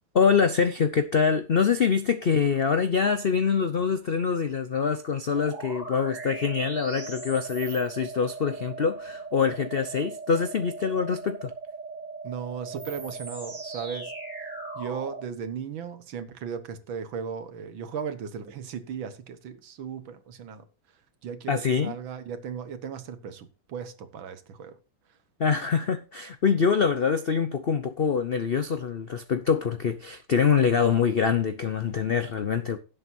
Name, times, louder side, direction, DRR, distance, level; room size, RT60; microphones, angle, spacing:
voice 1, 0.1-11.5 21.5-21.9 25.4-32.8, left 6 dB, 70° left, 0.5 m, -25 dB
sound 1, 5.3-15.3, right 3 dB, 40° right, 4.0 m, -38 dB
voice 2, 12.2-14.1 14.8-20.7 21.2-24.8, right 7 dB, 85° right, 2.0 m, -36 dB
17.0 x 7.7 x 2.7 m
omnidirectional pair, 2.1 m